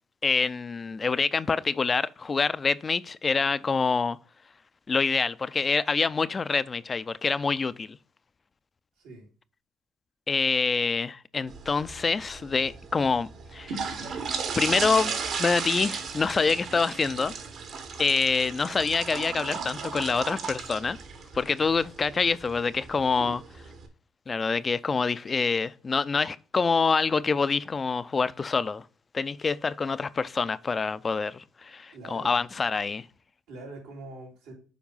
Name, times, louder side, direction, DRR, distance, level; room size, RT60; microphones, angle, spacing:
voice 1, 0.2-4.2 4.9-8.0 10.3-13.9 14.6-15.1 15.4-17.3 18.0-21.0 21.3-23.4 24.3-28.8 29.1-33.1, left 4 dB, 35° left, 0.5 m, -26 dB
voice 2, 9.0-9.3 23.2-23.4 31.9-32.4 33.5-34.5, right 2 dB, 85° right, 4.2 m, -43 dB
sound 1, 11.5-23.9, right 5 dB, 65° right, 1.8 m, -36 dB
7.2 x 4.6 x 5.5 m
supercardioid pair, 65°, 0 cm